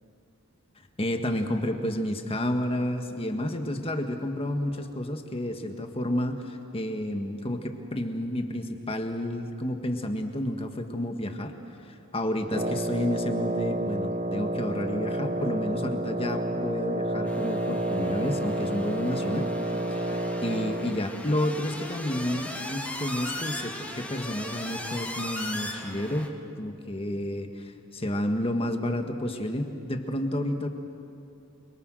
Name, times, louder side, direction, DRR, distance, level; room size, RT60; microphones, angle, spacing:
voice 1, 1.0-11.5 12.1-30.7, left 1 dB, 25° left, 5 dB, 1.6 m, -30 dB
Wind instrument woodwind instrument, 12.5-21.1, right 1 dB, 35° right, 0.9 m, -30 dB
sound 1, 17.3-26.3, left 1 dB, 5° left, 1.7 m, -38 dB
29.0 x 23.0 x 6.4 m, 2.8 s
head